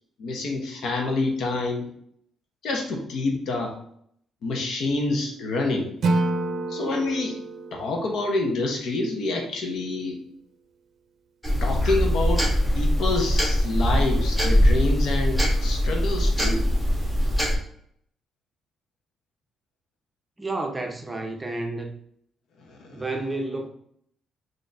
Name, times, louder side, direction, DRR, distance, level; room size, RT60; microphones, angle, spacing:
voice 1, 0.2-1.9 2.6-3.7 4.4-5.9 6.7-7.4 7.7-10.2 11.6-12.5 12.7-16.6 22.7-22.9, left 2 dB, 70° left, 0.8 m, -27 dB
Acoustic guitar / Strum, 6.0-9.2, right 2 dB, 65° right, 0.5 m, -29 dB
sound 1, 11.4-17.6, equal, 10° left, 1.4 m, -22 dB
voice 2, 20.4-21.9 22.9-23.7, right 2 dB, 20° right, 0.6 m, -30 dB
3.9 x 2.6 x 3.3 m
cardioid pair, 90°, 0 cm